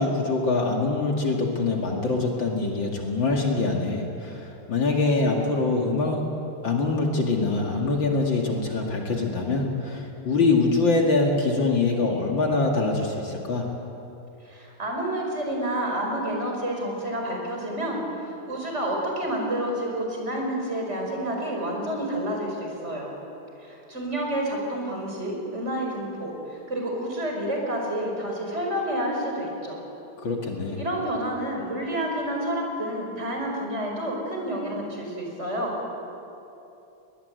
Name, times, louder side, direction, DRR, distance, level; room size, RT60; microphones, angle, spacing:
voice 1, 0.0-6.2 6.6-13.7 30.2-30.8, left 3 dB, 60° left, 0 dB, 2.9 m, -24 dB
voice 2, 14.4-23.1 23.6-29.8 30.8-35.7, right 1 dB, 30° right, 0 dB, 5.1 m, -29 dB
22.5 x 19.5 x 8.2 m, 2.9 s
omnidirectional pair, 2.4 m